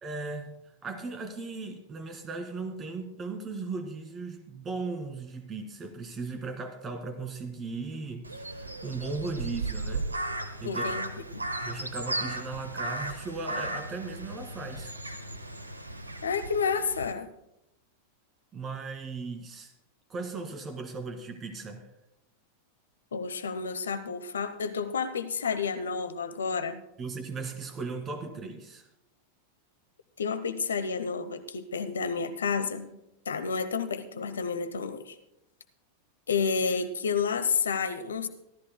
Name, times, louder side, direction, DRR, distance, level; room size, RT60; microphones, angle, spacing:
voice 1, 0.0-10.1 10.6-10.9 11.6-14.9 18.5-19.7 20.1-21.8 27.0-28.9, right 4 dB, 25° right, 7 dB, 2.1 m, -37 dB
Crow, 8.2-17.1, right 2 dB, 80° right, 0.9 m, -36 dB
voice 2, 10.6-11.4 16.2-17.3 23.1-26.8 30.2-33.0 33.3-35.2 36.3-38.3, left 5 dB, 70° left, 11 dB, 0.9 m, -30 dB
25.5 x 13.0 x 2.2 m, 0.86 s
figure-of-eight pair, 90°, 0 cm